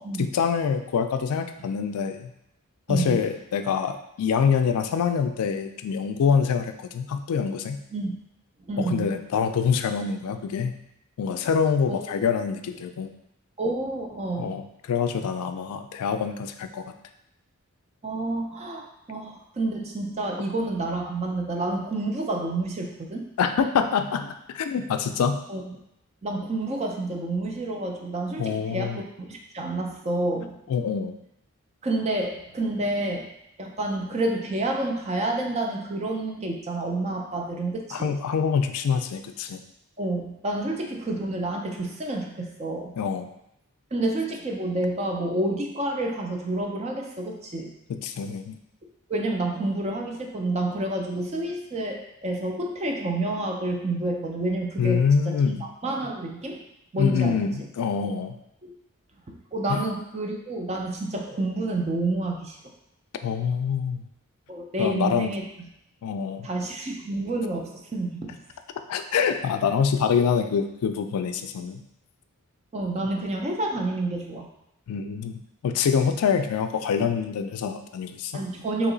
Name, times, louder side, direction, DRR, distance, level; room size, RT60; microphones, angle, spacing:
voice 1, 0.0-2.3 2.9-7.8 8.8-10.7 11.2-13.1 14.4-16.8 23.4-25.4 28.4-29.0 30.7-31.1 37.9-39.6 43.0-43.3 47.9-48.6 54.8-55.6 57.0-58.4 59.7-59.8 63.2-64.0 64.8-65.3 66.0-66.5 68.9-71.8 74.9-78.4, left 6 dB, 80° left, 8 dB, 0.3 m, -25 dB
voice 2, 8.7-9.1 11.9-12.0 13.6-14.5 18.0-23.2 25.5-25.8 26.2-30.6 31.8-33.3 33.6-38.1 40.0-42.9 43.9-47.7 49.1-56.6 56.9-57.7 58.6-58.7 59.3-62.6 64.5-65.5 66.4-68.4 72.7-74.5 78.3-78.9, right 2 dB, 30° right, 1 dB, 0.4 m, -29 dB
3.0 x 2.9 x 3.8 m, 0.80 s
head